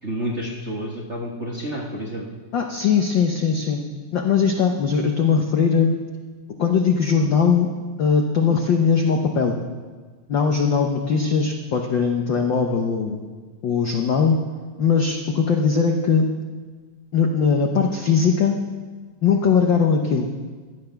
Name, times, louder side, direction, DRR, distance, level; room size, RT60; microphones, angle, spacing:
voice 1, 0.0-2.3, equal, 35° right, -3 dB, 1.3 m, -29 dB
voice 2, 2.5-3.8 4.1-5.9 6.6-7.7 8.0-9.6 10.3-13.2 13.6-14.4 14.8-16.2 17.1-18.6 19.2-20.3, left 6 dB, 65° left, 3 dB, 1.1 m, -20 dB
16.0 x 12.0 x 5.8 m, 1.4 s
omnidirectional pair, 3.4 m